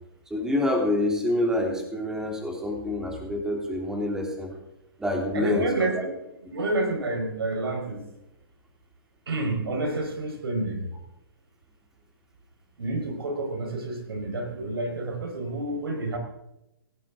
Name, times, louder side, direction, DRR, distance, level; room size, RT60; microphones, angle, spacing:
voice 1, 0.3-4.5 5.0-6.0, left 1 dB, 5° right, 0 dB, 3.1 m, -27 dB
voice 2, 5.3-6.1 6.5-8.0 9.3-10.9 12.8-16.2, right 2 dB, 85° right, 3 dB, 5.0 m, -29 dB
17.5 x 17.0 x 3.8 m, 0.88 s
hypercardioid pair, 145°, 12 cm